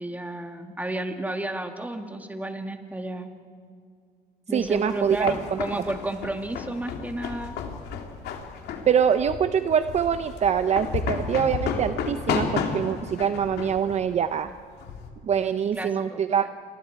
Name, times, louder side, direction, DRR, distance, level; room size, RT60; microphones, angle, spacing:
voice 1, 0.0-3.3 4.5-7.6 15.6-16.5, right 1 dB, 10° right, 5 dB, 2.0 m, -32 dB
voice 2, 4.5-5.6 8.9-14.5 15.2-16.5, right 8 dB, 40° right, 10 dB, 0.7 m, -24 dB
sound 1, 4.7-15.1, left 6 dB, 75° left, 2.6 m, -32 dB
29.0 x 22.0 x 4.7 m, 2.2 s
cardioid pair, 110°, 17 cm